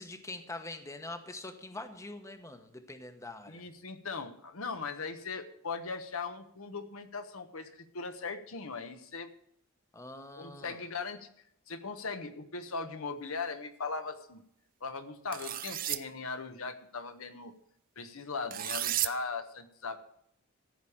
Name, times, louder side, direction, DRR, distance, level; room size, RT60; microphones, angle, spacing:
voice 1, 0.0-3.6 9.9-10.8, left 2 dB, 15° left, 7 dB, 0.9 m, -44 dB
voice 2, 3.5-9.3 10.4-11.3 11.7-14.4 14.8-17.5 18.0-20.0, left 4 dB, 70° left, 8 dB, 1.1 m, -39 dB
sound 1, 15.3-16.0 18.5-19.1, right 13 dB, 40° right, 0.5 m, -32 dB
14.5 x 5.0 x 8.7 m, 0.73 s
head